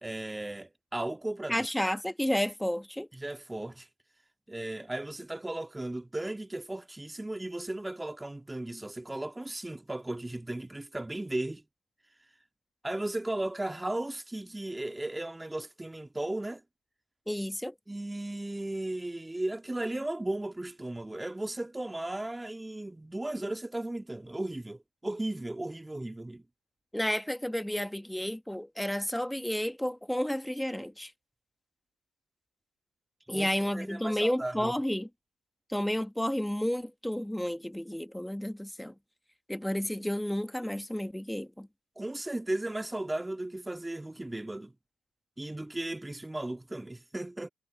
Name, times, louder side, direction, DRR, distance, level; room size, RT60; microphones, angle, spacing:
voice 1, 0.0-1.7 3.1-3.9 4.5-11.6 12.8-16.6 17.9-26.4 33.3-34.7 42.0-44.7 45.4-47.5, right 1 dB, 15° right, 1.9 m, -36 dB
voice 2, 1.5-3.1 17.3-17.7 26.9-31.1 33.3-35.1 35.7-38.9 39.5-41.7, equal, 5° left, 1.7 m, -31 dB
hypercardioid pair, 50°, 0 cm